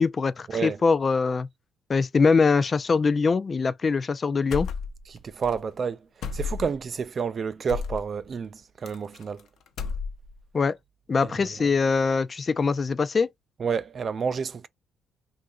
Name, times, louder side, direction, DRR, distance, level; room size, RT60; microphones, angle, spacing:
voice 1, 0.0-1.5 1.9-4.7 10.5-10.8 11.1-13.3, left 4 dB, 35° left, 0.3 m, -23 dB
sound 1, 4.5-5.2 5.4-5.6 6.2-6.8 7.7-8.0 8.9-9.4 9.7-10.4, left 5 dB, 75° left, 0.6 m, -32 dB
voice 2, 5.1-6.0 6.3-9.4 11.2-11.3 13.6-14.7, right 6 dB, 45° right, 0.4 m, -29 dB
2.8 x 2.5 x 3.5 m
cardioid pair, 90°, 0 cm